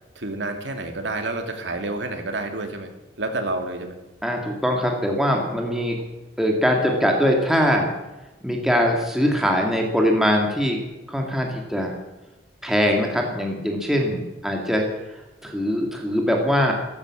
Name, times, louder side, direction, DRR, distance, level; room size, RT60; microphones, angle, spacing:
voice 1, 0.2-2.9 3.2-4.0, right 2 dB, 85° right, 5 dB, 2.4 m, -29 dB
voice 2, 4.2-6.0 6.4-7.9 8.4-10.8 11.1-12.0 12.6-14.9 15.4-16.7, equal, ahead, 1 dB, 2.1 m, -22 dB
14.5 x 12.5 x 7.5 m, 1.0 s
head